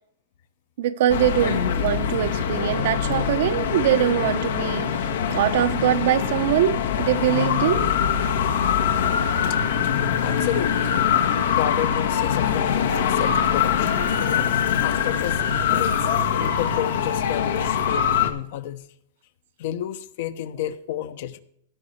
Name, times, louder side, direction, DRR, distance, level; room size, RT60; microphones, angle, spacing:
voice 1, 0.8-4.9 5.3-7.9, right 12 dB, 60° right, 0.8 m, -23 dB
sound 1, 1.1-18.3, left 8 dB, 90° left, 1.6 m, -23 dB
voice 2, 10.2-10.9 11.4-14.0 14.8-16.1 16.4-18.9 19.6-21.4, left 11 dB, 55° left, 0.9 m, -31 dB
16.5 x 6.4 x 4.3 m
supercardioid pair, 155°, 0 cm